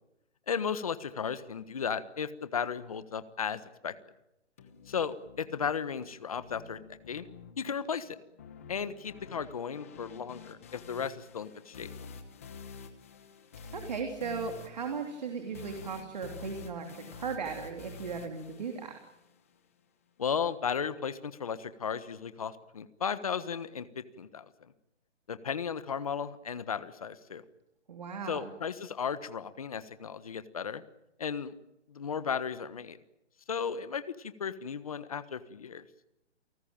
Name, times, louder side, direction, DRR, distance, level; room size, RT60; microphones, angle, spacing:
voice 1, 0.5-3.9 4.9-7.3 7.6-8.2 8.7-11.9 20.2-24.7 25.3-27.4 28.3-30.8 31.2-31.5 31.9-33.0 33.5-35.8, left 7 dB, 30° left, 13 dB, 1.3 m, -35 dB
sound 1, 4.6-19.6, left 5 dB, 10° left, 1.1 m, -49 dB
voice 2, 13.7-19.0 27.9-28.5, right 5 dB, 35° right, 4 dB, 3.2 m, -37 dB
29.5 x 19.0 x 8.9 m, 0.88 s
hypercardioid pair, 175°, 36 cm